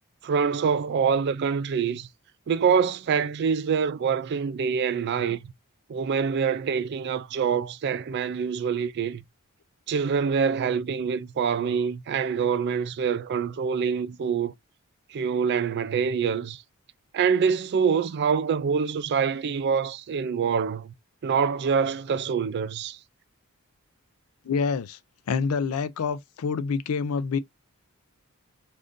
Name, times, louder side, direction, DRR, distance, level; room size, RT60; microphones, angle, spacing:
voice 1, 0.2-2.1 2.5-5.4 5.9-9.2 9.9-14.5 15.1-16.6 17.1-20.9 21.2-23.0, right 6 dB, 50° right, 0.3 m, -25 dB
voice 2, 24.4-25.0 25.3-27.4, left 5 dB, 75° left, 0.4 m, -27 dB
2.5 x 2.5 x 3.5 m
head